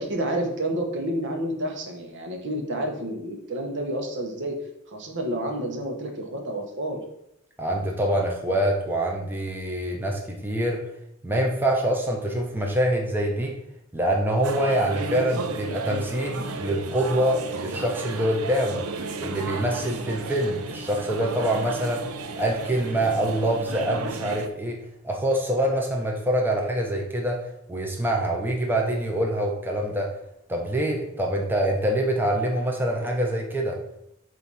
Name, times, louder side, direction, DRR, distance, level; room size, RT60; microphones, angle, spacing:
voice 1, 0.0-4.6 4.9-7.0, right 1 dB, 60° right, 2 dB, 1.2 m, -29 dB
voice 2, 7.6-10.8 11.2-13.6 13.9-18.9 19.2-22.0 22.4-30.1 30.5-33.8, right 1 dB, 10° right, 0 dB, 0.8 m, -25 dB
sound 1, 14.4-24.5, right 3 dB, 85° right, 0.6 m, -33 dB
7.8 x 2.8 x 5.5 m, 0.79 s
head